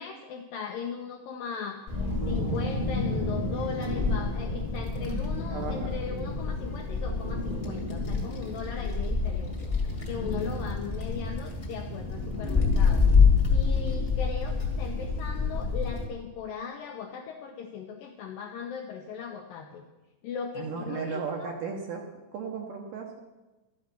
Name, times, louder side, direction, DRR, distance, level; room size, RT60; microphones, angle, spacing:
voice 1, 0.0-1.8 2.3-9.7 10.1-13.1 13.5-19.9 20.2-21.5, left 6 dB, 80° left, 3 dB, 2.0 m, -38 dB
Wind, 1.9-16.1, left 4 dB, 30° left, 1.2 m, -27 dB
voice 2, 5.5-6.3 20.6-22.1 22.3-23.2, right 5 dB, 70° right, 2 dB, 2.1 m, -36 dB
12.5 x 10.5 x 6.0 m, 1.1 s
omnidirectional pair, 5.0 m